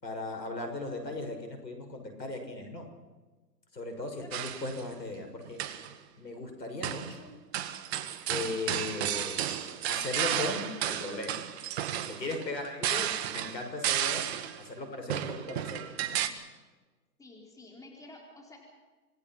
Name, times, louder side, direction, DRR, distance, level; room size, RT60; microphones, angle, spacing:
voice 1, 0.0-2.9 3.7-5.6 6.2-7.3 8.3-9.5 9.9-11.4 12.1-14.3 14.6-16.2, left 2 dB, 85° left, 5 dB, 6.2 m, -37 dB
sound 1, 4.3-4.8 5.4-5.9 6.8-7.2 7.5-14.6 15.1-16.3, right 11 dB, 40° right, 1.7 m, -33 dB
voice 2, 17.2-18.6, left 2 dB, 5° left, 0 dB, 4.4 m, -51 dB
26.5 x 20.0 x 6.0 m, 1.3 s
hypercardioid pair, 135°, 49 cm